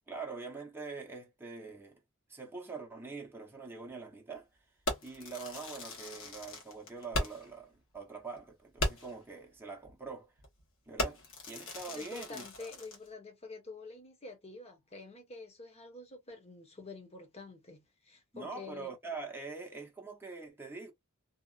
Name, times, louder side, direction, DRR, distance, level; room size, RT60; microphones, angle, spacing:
voice 1, 0.1-2.0 2.3-4.5 5.0-10.3 10.9-11.2 11.5-12.7 18.3-20.9, right 4 dB, 10° right, 0.7 m, -44 dB
Fireworks, 4.9-7.6 7.9-8.0 8.4-8.5 8.8-9.2 9.8-10.0 10.4-10.6 11.0-13.1, left 1 dB, 65° left, 1.1 m, -38 dB
voice 2, 11.9-18.9, left 3 dB, 30° left, 0.9 m, -48 dB
2.8 x 2.3 x 2.4 m
head